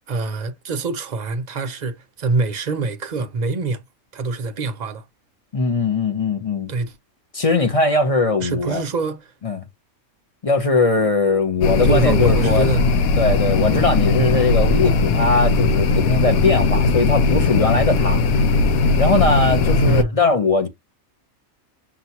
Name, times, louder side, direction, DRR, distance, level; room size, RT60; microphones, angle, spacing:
voice 1, 0.1-3.8 4.1-5.0 6.7-7.0 8.4-9.3 11.8-12.8 14.2-14.4 19.8-20.2, right 3 dB, 55° right, 0.4 m, -24 dB
voice 2, 5.5-6.7 7.3-8.8 9.4-9.6 10.4-12.7 13.2-18.2 19.0-20.7, left 3 dB, 30° left, 0.7 m, -20 dB
sound 1, 11.6-20.0, left 3 dB, 90° left, 1.1 m, -18 dB
5.9 x 2.5 x 2.8 m
omnidirectional pair, 1.4 m